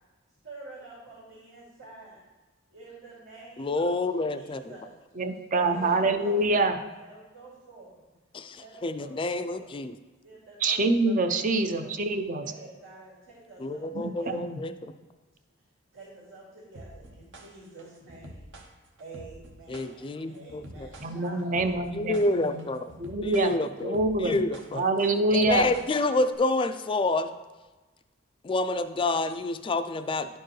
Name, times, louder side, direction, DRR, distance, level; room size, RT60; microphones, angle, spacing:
voice 1, 0.4-2.2 2.7-4.9 5.5-8.0 8.5-9.7 10.2-11.9 12.4-14.6 15.9-18.5 19.0-21.9 22.7-22.9, right 3 dB, 80° right, -7 dB, 2.4 m, -48 dB
voice 2, 3.6-4.6 8.3-9.9 13.6-14.9 19.7-20.9 21.9-22.9 23.2-24.8 25.3-27.3 28.4-30.4, left 2 dB, 25° left, 10 dB, 0.3 m, -28 dB
voice 3, 5.2-6.8 10.6-12.4 13.9-14.6 21.0-22.2 22.5-22.7 23.0-23.5 23.8-24.4 24.7-25.7, right 2 dB, 40° right, 8 dB, 0.5 m, -25 dB
sound 1, 16.7-26.3, right 1 dB, 60° right, 0.8 m, -47 dB
11.0 x 4.5 x 3.1 m, 1.2 s
head